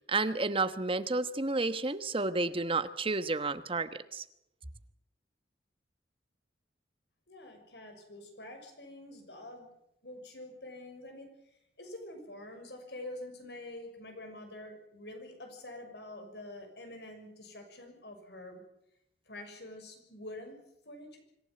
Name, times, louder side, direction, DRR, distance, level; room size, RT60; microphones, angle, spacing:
voice 1, 0.1-4.2, right 3 dB, 30° right, 11 dB, 1.2 m, -31 dB
voice 2, 7.3-9.7 10.0-11.3 11.8-18.6 19.3-20.6 20.8-21.2, left 1 dB, 70° left, 5 dB, 6.3 m, -46 dB
26.0 x 15.5 x 7.9 m, 0.81 s
head